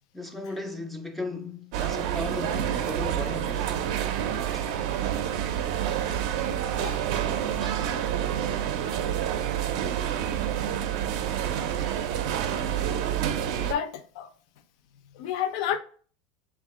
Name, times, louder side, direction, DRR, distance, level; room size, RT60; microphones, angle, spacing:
voice 1, 0.1-3.8 4.5-4.6 7.2-7.8, left 2 dB, 5° left, 0.3 m, -37 dB
sound 1, 1.7-13.7, right 10 dB, 65° right, 0.4 m, -28 dB
voice 2, 6.7-7.0 13.6-14.3 15.2-15.8, left 9 dB, 65° left, 0.4 m, -30 dB
3.5 x 2.3 x 3.5 m
supercardioid pair, 160°, 3 cm